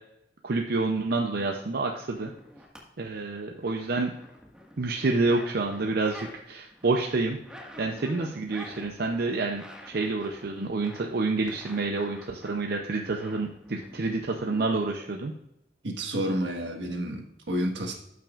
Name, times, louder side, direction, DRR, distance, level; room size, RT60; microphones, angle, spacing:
voice 1, 0.4-2.3 3.0-4.1 4.8-7.4 7.8-15.3, right 3 dB, 55° right, 2 dB, 0.6 m, -28 dB
sound 1, 2.1-2.8 3.1-6.4 6.6-14.7, equal, 5° right, 1.6 m, -48 dB
voice 2, 15.8-17.9, equal, 80° right, 2 dB, 1.5 m, -30 dB
13.5 x 5.9 x 2.4 m, 0.84 s
head